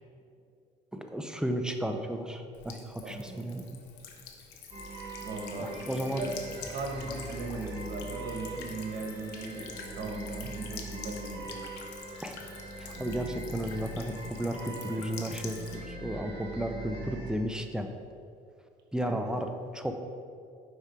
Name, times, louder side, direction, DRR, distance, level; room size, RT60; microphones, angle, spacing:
voice 1, 0.9-3.6 5.6-6.2 12.2-12.4 12.8-17.9 18.9-20.0, right 1 dB, 5° right, 5 dB, 0.4 m, -33 dB
Buzz / Water tap faucet / Trickle dribble, 2.5-15.8, left 6 dB, 90° left, 0.7 m, -47 dB
voice 2, 3.0-3.5 5.2-5.7 6.2-6.3 6.7-11.6 19.0-19.2, right 2 dB, 80° right, 0 dB, 1.2 m, -38 dB
sound 1, 4.7-17.4, right 2 dB, 35° right, 1.2 m, -42 dB
5.1 x 4.8 x 4.3 m, 2.4 s
cardioid pair, 110°, 17 cm